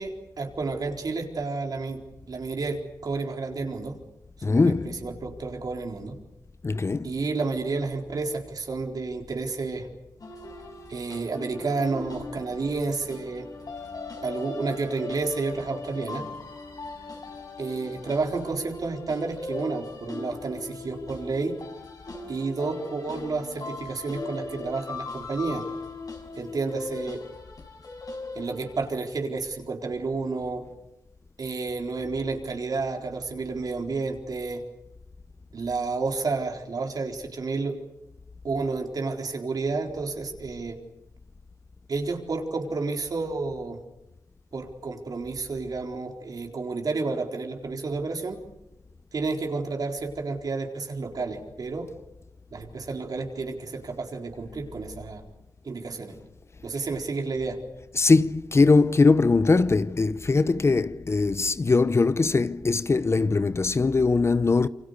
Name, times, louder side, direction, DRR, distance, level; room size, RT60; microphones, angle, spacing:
voice 1, 0.0-2.0 2.3-4.0 4.4-6.2 7.0-9.9 10.9-13.5 14.2-16.3 17.6-21.6 22.3-25.6 26.4-27.2 28.3-30.7 31.4-34.6 35.5-37.8 38.4-40.8 41.9-43.8 44.5-48.4 49.1-51.9 52.5-55.2 55.6-56.1 56.6-57.6, right 3 dB, 65° right, 4.2 m, -30 dB
voice 2, 4.4-5.1 6.6-7.1 57.9-64.7, left 3 dB, 40° left, 0.8 m, -21 dB
sound 1, 10.2-28.9, left 3 dB, 60° left, 5.9 m, -39 dB
28.5 x 25.0 x 6.7 m
cardioid pair, 60°, 7 cm